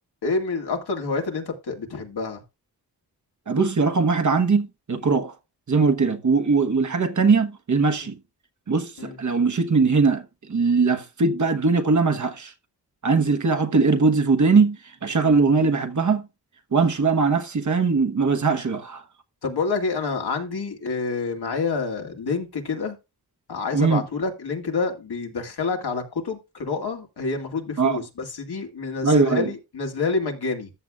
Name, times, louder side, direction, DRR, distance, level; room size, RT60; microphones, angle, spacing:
voice 1, 0.2-2.4 8.0-8.1 9.0-9.2 15.1-15.3 19.4-23.0 23.5-30.7, left 4 dB, 75° left, 2.1 m, -28 dB
voice 2, 3.5-5.3 5.7-8.2 8.7-12.5 13.0-16.3 16.7-19.0 23.7-24.0 27.8-28.0 29.0-29.5, right 4 dB, 50° right, 1.2 m, -21 dB
14.0 x 7.0 x 2.4 m
cardioid pair, 65°, 39 cm